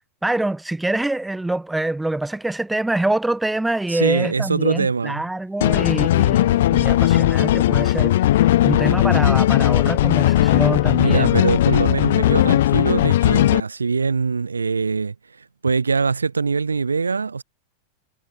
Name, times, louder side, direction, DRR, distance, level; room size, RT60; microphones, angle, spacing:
voice 1, 0.2-11.5, right 2 dB, 5° right, 2.5 m, -25 dB
voice 2, 3.9-5.2 11.0-17.4, right 4 dB, 75° right, 0.5 m, -23 dB
sound 1, 5.6-13.6, left 14 dB, 55° left, 0.7 m, -17 dB
figure-of-eight pair, 90°, 0 cm